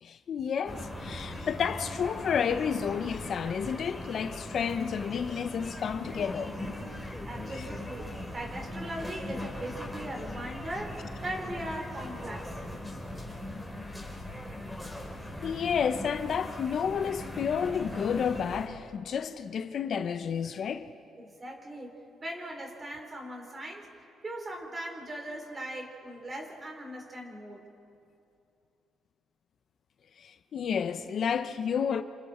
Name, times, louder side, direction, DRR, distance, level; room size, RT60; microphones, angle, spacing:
voice 1, 0.0-6.6 7.5-7.6 15.4-20.9 30.2-32.0, left 7 dB, 60° left, 0.8 m, -31 dB
sound 1, 0.6-18.7, left 1 dB, ahead, 4.2 m, -40 dB
voice 2, 6.9-12.5 21.2-22.0 22.2-23.9 24.2-27.6, right 1 dB, 30° right, 4.1 m, -39 dB
28.0 x 27.0 x 4.4 m
cardioid pair, 90°, 0 cm